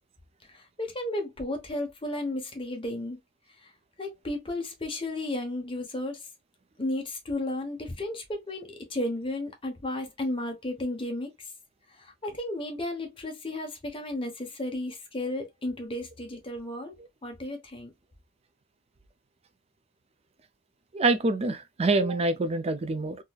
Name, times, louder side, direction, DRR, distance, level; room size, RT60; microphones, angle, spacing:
voice 1, 0.5-3.2 4.0-6.2 6.8-11.3 12.0-16.9 17.2-17.9, left 1 dB, 25° left, 1.0 m, -33 dB
voice 2, 20.9-23.2, right 2 dB, 30° right, 0.4 m, -25 dB
3.9 x 2.7 x 2.3 m
head